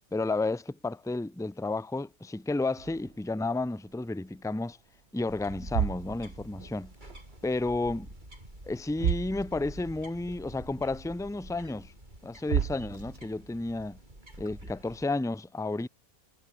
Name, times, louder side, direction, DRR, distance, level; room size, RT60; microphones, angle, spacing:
voice 1, 0.1-4.8 5.1-6.9 7.4-8.1 8.7-11.9 12.2-14.0 14.4-15.9, left 2 dB, ahead, 1.0 m, -32 dB
sound 1, 2.8-4.4 4.7-5.0 5.5-7.4 7.6-8.3 8.6-8.7 8.9-10.0 10.3-10.4 11.0-11.1 12.1-12.2 12.5-13.5, right 8 dB, 50° right, 1.0 m, -34 dB
sound 2, 5.3-15.0, right 1 dB, 30° right, 7.7 m, -48 dB
omnidirectional pair, 1.6 m